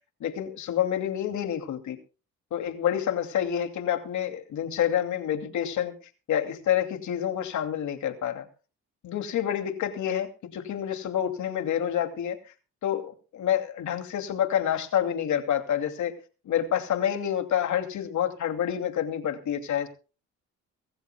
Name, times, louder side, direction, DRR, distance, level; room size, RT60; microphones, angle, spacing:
voice 1, 0.2-2.0 2.5-5.9 6.3-8.5 9.0-12.4 12.8-16.1 16.5-19.9, left 10 dB, 70° left, 7 dB, 2.7 m, -28 dB
24.5 x 14.0 x 2.3 m, 0.35 s
cardioid pair, 90°, 30 cm